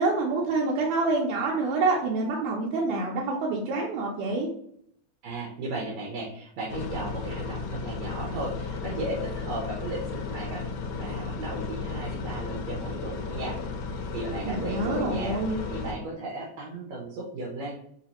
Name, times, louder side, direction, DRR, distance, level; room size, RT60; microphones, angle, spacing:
voice 1, 0.0-4.5 14.5-15.6, right 3 dB, 85° right, -3 dB, 2.2 m, -27 dB
voice 2, 5.2-10.6 10.9-13.6 14.1-15.4 15.7-17.8, right 2 dB, 70° right, -3 dB, 1.9 m, -35 dB
sound 1, 6.7-15.9, left 4 dB, 75° left, 1.4 m, -34 dB
4.0 x 3.9 x 2.9 m, 0.68 s
omnidirectional pair, 3.4 m